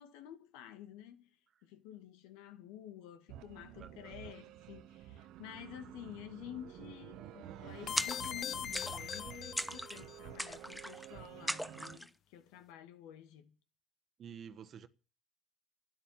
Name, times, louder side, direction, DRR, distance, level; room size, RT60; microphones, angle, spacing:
voice 1, 0.0-1.4 1.6-13.5, left 11 dB, 85° left, 1.9 m, -51 dB
sound 1, 3.3-12.0, right 12 dB, 70° right, 0.9 m, -51 dB
voice 2, 3.7-4.3 14.2-14.9, right 8 dB, 50° right, 1.2 m, -50 dB
sound 2, 7.9-10.2, left 9 dB, 50° left, 0.7 m, -41 dB
sound 3, 8.0-8.4 8.7-9.2 9.6-10.0 10.4-11.1 11.5-12.1, equal, ahead, 0.8 m, -39 dB
12.5 x 11.0 x 7.3 m
supercardioid pair, 95°, 0 cm